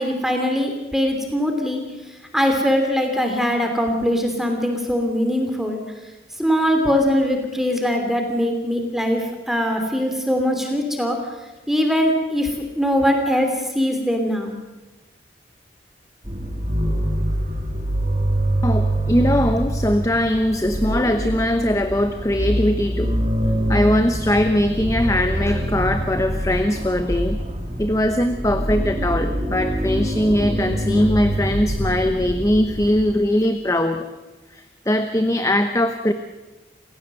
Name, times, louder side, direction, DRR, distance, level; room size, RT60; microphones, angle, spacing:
voice 1, 0.0-1.8 2.3-5.8 6.4-11.2 11.7-14.5, equal, ahead, 3 dB, 2.9 m, -21 dB
sound 1, 16.2-33.1, right 1 dB, 35° right, 3.5 m, -24 dB
voice 2, 18.6-23.2 23.7-27.4 27.8-34.1 34.5-36.1, left 1 dB, 15° left, 8 dB, 0.9 m, -21 dB
28.5 x 16.5 x 7.7 m, 1.2 s
head